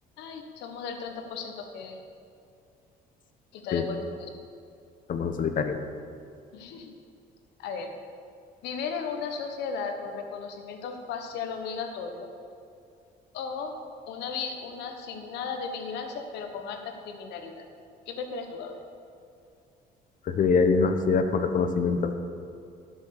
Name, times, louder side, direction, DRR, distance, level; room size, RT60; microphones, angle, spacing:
voice 1, 0.2-2.0 3.5-4.3 6.5-6.9 7.6-7.9 8.6-12.3 13.3-13.7 14.1-17.6 18.1-18.8, left 5 dB, 85° left, 5 dB, 1.3 m, -35 dB
voice 2, 5.1-5.8 20.3-22.1, left 5 dB, 50° left, 7 dB, 1.0 m, -24 dB
12.0 x 6.4 x 6.7 m, 2.5 s
cardioid pair, 110°, 17 cm